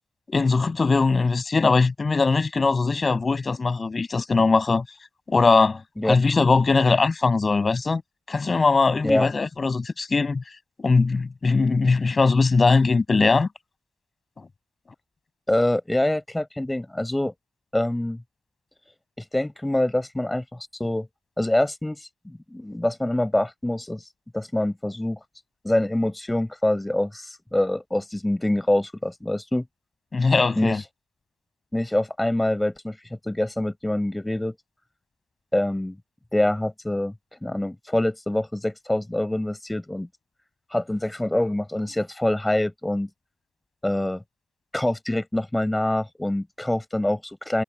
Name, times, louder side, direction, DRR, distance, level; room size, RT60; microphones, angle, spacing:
voice 1, 0.3-4.8 5.3-8.0 8.3-10.4 10.8-13.5 30.1-30.8, left 4 dB, 30° left, 8.0 m, -20 dB
voice 2, 15.5-17.3 17.7-18.2 19.2-21.1 21.4-24.1 24.3-25.2 25.6-29.6 30.6-30.8 31.7-33.0 33.2-34.5 35.5-36.0 36.3-37.1 37.4-40.1 40.7-43.1 43.8-44.2 44.7-47.6, left 1 dB, 10° left, 6.4 m, -25 dB
cardioid pair, 90°, 0 cm